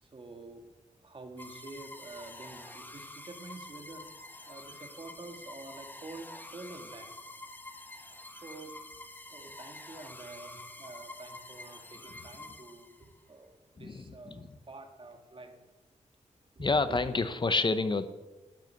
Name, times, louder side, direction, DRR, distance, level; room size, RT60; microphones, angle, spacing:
voice 1, 0.0-0.7 1.0-4.1 4.5-7.1 8.4-8.7 9.3-15.6 16.6-17.0, right 2 dB, 45° right, 5 dB, 2.0 m, -48 dB
sound 1, 1.4-13.2, left 1 dB, 15° left, 1.1 m, -48 dB
voice 2, 13.8-14.5 16.6-18.1, left 3 dB, 40° left, 11 dB, 1.0 m, -29 dB
13.0 x 8.2 x 9.4 m, 1.1 s
wide cardioid pair, 95°, 13 cm